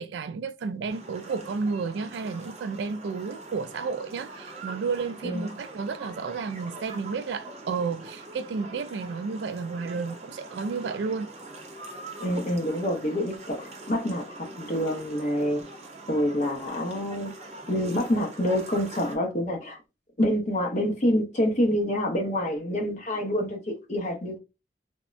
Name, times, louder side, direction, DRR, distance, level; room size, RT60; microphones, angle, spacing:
voice 1, 0.0-11.3, right 5 dB, 75° right, 0.3 m, -32 dB
sound 1, 0.9-19.2, right 2 dB, 40° right, 0.7 m, -43 dB
voice 2, 12.2-15.7 16.1-17.3 17.7-19.8 20.2-24.4, equal, 40° left, 0.8 m, -27 dB
3.4 x 2.1 x 2.5 m
head